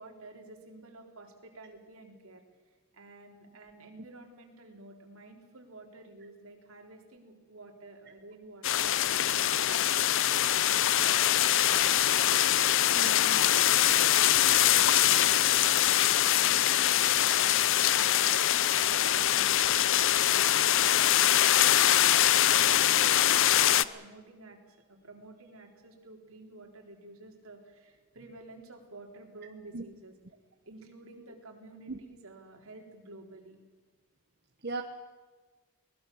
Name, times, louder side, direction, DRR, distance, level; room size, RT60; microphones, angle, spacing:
voice 1, 0.0-2.4 2.9-12.3 12.5-30.1 30.7-33.6, right 2 dB, 70° right, 2 dB, 3.9 m, -51 dB
sound 1, 8.6-23.8, left 12 dB, 60° left, 0.6 m, -23 dB
voice 2, 13.0-13.4 29.7-29.8 31.9-32.0 34.6-34.8, right 3 dB, 45° right, 5 dB, 1.2 m, -37 dB
22.5 x 19.5 x 7.1 m, 1.4 s
head